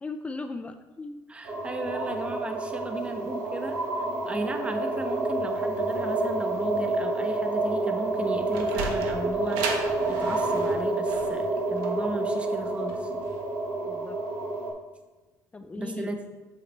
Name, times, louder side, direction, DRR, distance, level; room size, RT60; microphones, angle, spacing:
voice 1, 0.0-1.2 13.8-14.2 15.5-16.1, left 3 dB, 15° left, 8 dB, 0.4 m, -37 dB
voice 2, 1.3-3.8 4.2-9.8 10.1-13.1 15.6-16.3, right 2 dB, 15° right, 5 dB, 1.0 m, -35 dB
sound 1, 1.4-14.7, right 2 dB, 75° right, 3.2 m, -29 dB
Sliding door, 8.2-13.4, right 4 dB, 90° right, 1.2 m, -35 dB
9.2 x 8.0 x 3.3 m, 1.2 s
cardioid pair, 115°, 7 cm